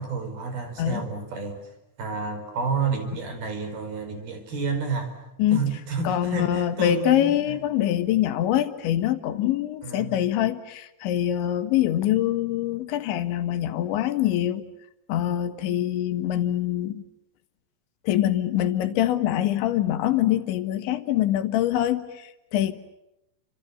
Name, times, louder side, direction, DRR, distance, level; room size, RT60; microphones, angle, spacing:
voice 1, 0.0-1.6 2.0-5.1 5.5-7.3 9.8-10.2, right 4 dB, 55° right, 7 dB, 6.5 m, -30 dB
voice 2, 6.1-14.6 15.1-17.0 18.1-22.7, left 12 dB, 85° left, 10 dB, 3.8 m, -24 dB
29.5 x 27.0 x 7.1 m, 0.89 s
omnidirectional pair, 5.2 m